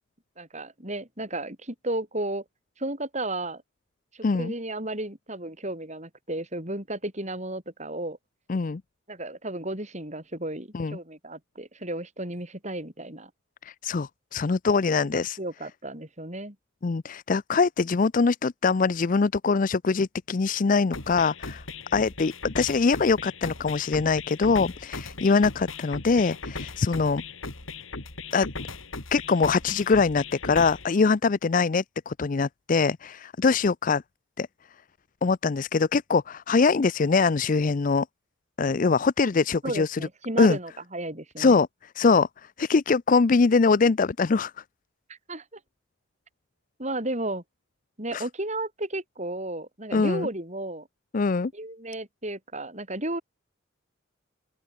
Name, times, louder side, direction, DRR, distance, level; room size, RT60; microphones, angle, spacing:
voice 1, 0.4-2.4 2.8-3.6 4.1-8.2 9.1-13.3 15.1-16.6 39.2-39.3 39.6-41.6 45.1-45.6 46.8-47.4 48.0-50.9 51.5-53.2, right 1 dB, 35° right, 6.8 m, -33 dB
voice 2, 4.2-4.5 8.5-8.8 10.7-11.0 13.6-15.4 16.8-21.6 21.9-27.2 28.3-28.5 29.1-34.0 34.4-34.5 35.2-38.1 38.6-40.0 40.4-40.6 41.4-41.7 42.0-42.3 42.6-44.5 48.1-48.2 49.9-50.3 51.1-51.5, left 4 dB, 40° left, 0.4 m, -23 dB
sound 1, 20.9-30.9, left 3 dB, 85° left, 3.7 m, -38 dB
open air
head